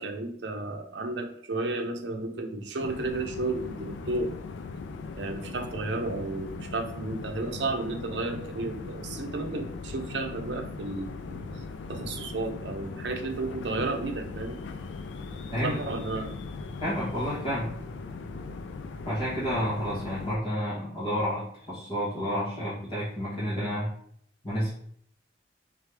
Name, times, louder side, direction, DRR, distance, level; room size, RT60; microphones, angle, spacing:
voice 1, 0.0-4.4 5.1-11.5 11.9-14.6 15.6-16.4, right 2 dB, 70° right, 4 dB, 0.6 m, -33 dB
sound 1, 2.8-20.4, left 4 dB, 85° left, 0.4 m, -39 dB
voice 2, 16.8-17.7 19.0-23.9 24.4-24.7, equal, 30° left, -10 dB, 1.2 m, -30 dB
3.6 x 3.3 x 3.3 m, 0.65 s
head